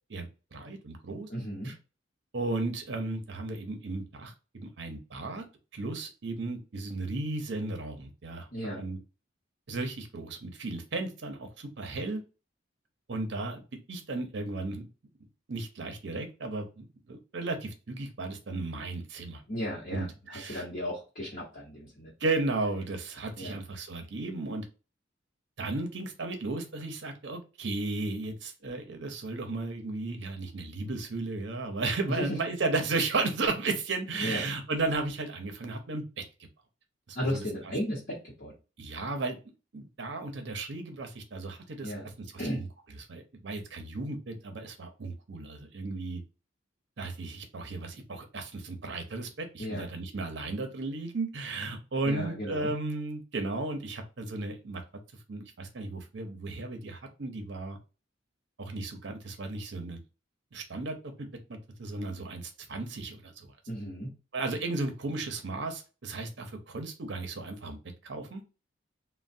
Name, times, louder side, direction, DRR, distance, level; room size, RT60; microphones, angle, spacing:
voice 1, 0.1-1.3 1.6-1.8 2.3-5.4 5.7-8.5 8.8-9.0 9.7-12.2 13.1-13.6 13.9-14.9 15.5-19.4 19.9-20.7 22.2-24.6 25.6-36.5 37.1-37.4 38.8-39.4 39.7-42.7 43.1-46.2 47.0-54.8 55.3-57.8 58.6-60.0 60.5-63.5 64.3-67.8 68.0-68.4, right 3 dB, 60° right, 6 dB, 0.6 m, -35 dB
voice 2, 1.3-1.7 8.5-8.8 19.5-22.1 23.4-23.6 32.2-32.3 34.2-34.4 37.1-38.5 41.8-42.1 42.4-42.7 49.6-49.9 52.0-52.7 63.7-64.1, equal, 45° left, -8 dB, 0.9 m, -35 dB
3.1 x 2.1 x 2.6 m, 0.31 s
head